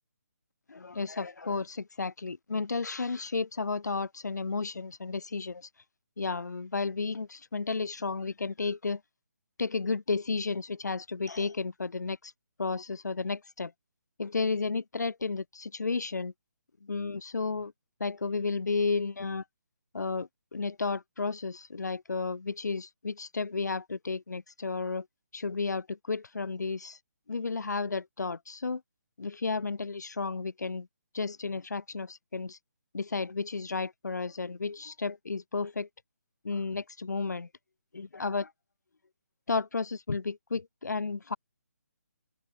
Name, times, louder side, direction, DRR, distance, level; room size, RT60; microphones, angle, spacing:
voice 1, 0.7-5.7 6.2-9.0 9.6-12.3 12.6-13.7 14.2-16.3 16.8-17.7 18.0-19.4 19.9-25.1 25.3-27.0 27.3-28.8 29.2-30.9 31.1-32.6 32.9-35.9 36.4-37.5 37.9-38.5 39.5-41.4, left 4 dB, 80° left, 2.7 m, -32 dB
open air
hypercardioid pair, 160°, 9 cm